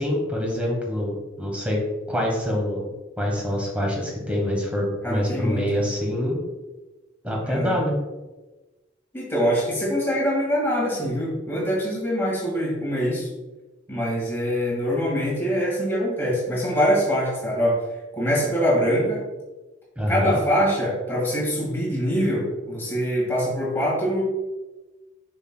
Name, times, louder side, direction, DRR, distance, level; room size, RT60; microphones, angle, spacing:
voice 1, 0.0-1.8 2.1-2.9 3.2-6.4 7.2-8.0 20.0-20.4, equal, 5° right, -1 dB, 1.2 m, -25 dB
voice 2, 5.0-5.6 7.4-7.8 9.1-13.3 13.9-17.8 18.1-19.2 20.1-24.2, equal, 10° left, -5 dB, 1.9 m, -24 dB
6.8 x 6.1 x 2.3 m, 1.1 s
head